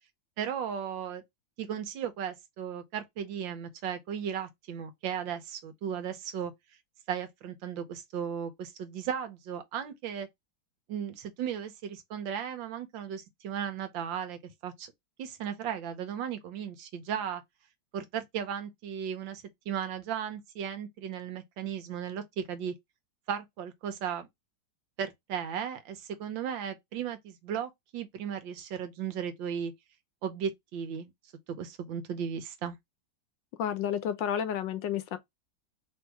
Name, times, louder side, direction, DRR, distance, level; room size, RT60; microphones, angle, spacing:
voice 1, 0.4-1.2 1.6-6.5 7.1-10.3 10.9-14.9 15.2-17.4 17.9-22.7 23.3-24.3 25.0-29.7 30.2-31.1 31.5-32.8, right 8 dB, 75° right, 1.5 m, -36 dB
voice 2, 33.6-35.2, left 9 dB, 75° left, 1.3 m, -31 dB
3.4 x 2.7 x 4.6 m
omnidirectional pair, 2.1 m